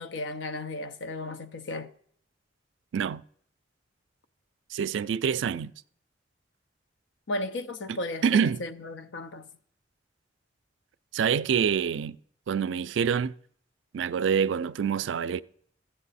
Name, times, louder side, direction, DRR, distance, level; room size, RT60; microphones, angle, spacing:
voice 1, 0.0-1.9 7.3-9.5, left 2 dB, 90° left, 0.7 m, -35 dB
voice 2, 4.7-5.7 7.9-8.6 11.1-12.2 12.5-13.3 13.9-15.4, right 7 dB, 85° right, 0.3 m, -26 dB
14.5 x 7.8 x 4.1 m
head